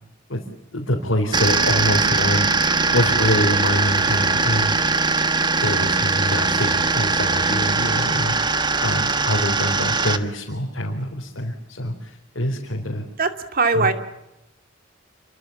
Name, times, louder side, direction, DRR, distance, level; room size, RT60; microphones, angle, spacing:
voice 1, 0.7-4.8 5.6-8.3 8.8-13.0 13.7-13.9, left 1 dB, 75° left, 0 dB, 4.1 m, -25 dB
sound 1, 1.3-10.2, right 4 dB, 25° right, 1.4 m, -21 dB
voice 2, 13.2-13.9, right 4 dB, 50° right, 7 dB, 2.5 m, -20 dB
28.0 x 23.5 x 7.3 m, 0.90 s
head